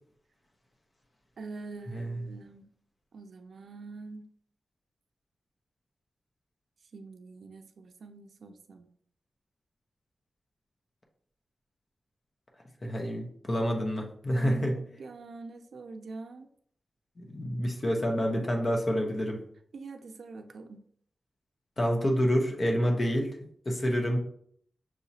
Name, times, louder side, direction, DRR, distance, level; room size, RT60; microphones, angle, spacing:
voice 1, 1.4-2.7 3.1-4.3 6.9-8.9 14.4-16.5 19.7-20.8, right 3 dB, 80° right, 7 dB, 0.4 m, -44 dB
voice 2, 1.9-2.2 12.8-14.8 17.2-19.4 21.8-23.4 23.6-24.2, equal, 40° left, 1 dB, 0.9 m, -28 dB
6.1 x 2.8 x 2.8 m, 0.63 s
wide cardioid pair, 100°, 0 cm